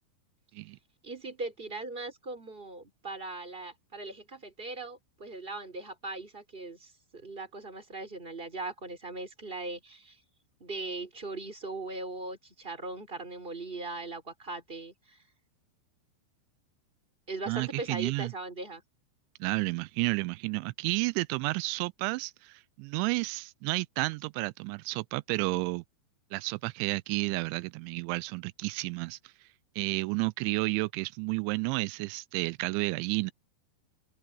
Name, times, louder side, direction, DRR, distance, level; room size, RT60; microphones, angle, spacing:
voice 1, 1.0-10.2 10.6-15.2 17.3-18.8, right 3 dB, 10° right, 4.5 m, -39 dB
voice 2, 17.5-18.3 19.4-25.8 26.3-29.2 29.8-33.3, right 24 dB, 85° right, 2.8 m, -31 dB
omnidirectional pair, 5.6 m